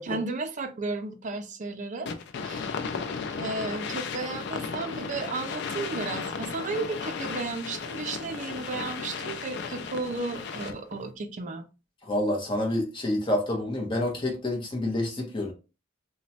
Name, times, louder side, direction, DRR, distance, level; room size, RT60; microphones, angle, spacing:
voice 1, 0.0-2.1 2.4-2.7 3.4-11.6, right 3 dB, 40° right, 0.4 m, -34 dB
sound 1, 2.1-11.0, left 5 dB, 60° left, 0.4 m, -35 dB
voice 2, 12.1-15.5, left 1 dB, 25° left, 0.8 m, -28 dB
3.0 x 2.1 x 2.6 m
head